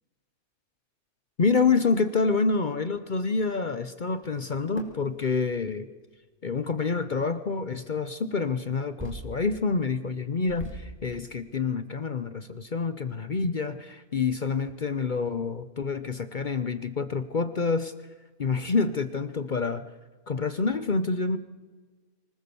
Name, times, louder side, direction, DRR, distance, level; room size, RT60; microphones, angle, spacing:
voice 1, 1.4-5.9 6.4-17.9 18.4-19.9 20.3-21.4, left 4 dB, 45° left, 12 dB, 0.7 m, -27 dB
sound 1, 4.8-5.0 6.2-6.3 7.6-7.8 9.0-9.5 9.9-10.0 10.5-11.0 11.6-11.7 12.0-12.1 12.4-12.7, right 2 dB, 5° right, 3.0 m, -39 dB
25.0 x 18.5 x 7.0 m, 1.4 s
omnidirectional pair, 1.6 m